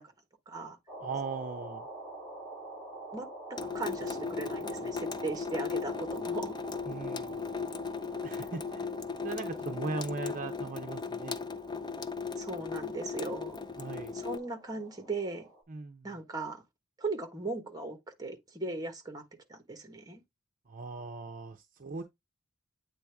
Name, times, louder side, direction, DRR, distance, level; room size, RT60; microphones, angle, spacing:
voice 1, 0.5-0.8 3.1-6.5 12.4-13.6 14.1-15.5 16.0-16.6 17.0-19.2 19.5-20.2, right 3 dB, 20° right, 1.3 m, -38 dB
sound 1, 0.9-15.6, right 2 dB, 5° left, 3.1 m, -47 dB
voice 2, 1.0-1.9 6.9-7.4 8.2-8.9 9.2-11.4 13.8-14.2 15.7-16.1 20.7-22.0, right 3 dB, 40° right, 0.7 m, -38 dB
Water tap faucet / Sink (filling or washing) / Drip, 3.6-14.4, left 5 dB, 20° left, 0.4 m, -37 dB
8.5 x 3.5 x 3.5 m
head